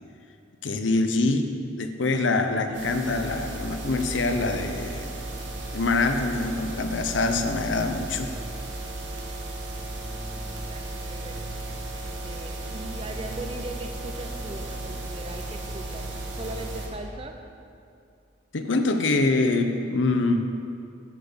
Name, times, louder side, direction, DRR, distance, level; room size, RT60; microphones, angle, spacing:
voice 1, 0.6-1.5 1.8-5.2 5.7-8.3 18.5-20.7, left 3 dB, 75° left, 6 dB, 0.7 m, -25 dB
sound 1, 2.7-16.9, right 1 dB, 75° right, 1.7 m, -35 dB
voice 2, 10.2-11.5 12.0-17.4, right 2 dB, 30° right, 5 dB, 0.7 m, -40 dB
9.1 x 6.6 x 6.7 m, 2.5 s
head